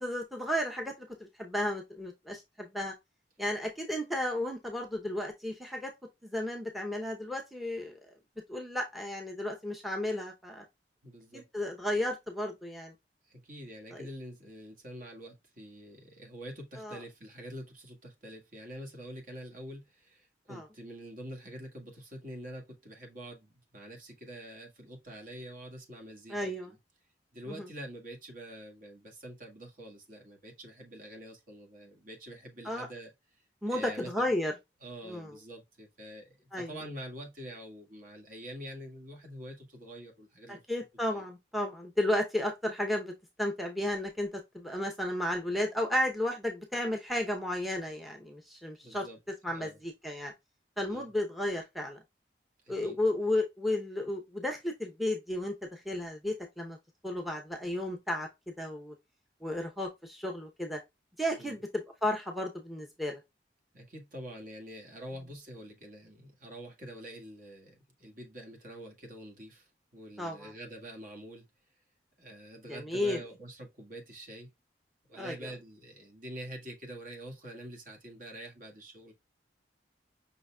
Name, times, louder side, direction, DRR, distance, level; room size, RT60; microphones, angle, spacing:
voice 1, 0.0-2.9 3.4-5.9 6.2-7.9 8.5-10.6 11.3-12.9 13.9-14.1 16.8-17.0 20.5-20.6 26.3-26.7 27.5-27.7 32.6-32.9 33.6-34.5 35.1-35.3 36.5-36.7 40.5-43.1 43.4-49.1 49.4-50.3 50.8-52.0 52.7-56.8 57.0-58.3 58.6-58.9 59.4-60.8 61.2-63.2 70.2-70.5 72.7-73.2 75.1-75.5, left 1 dB, ahead, 0.7 m, -33 dB
voice 2, 11.0-11.5 13.2-26.8 27.3-34.3 34.8-40.6 41.1-41.2 48.8-49.8 50.9-51.1 52.6-53.0 61.4-61.6 63.7-71.5 72.2-74.5 75.1-79.1, right 1 dB, 50° right, 1.6 m, -46 dB
5.7 x 3.9 x 2.2 m
head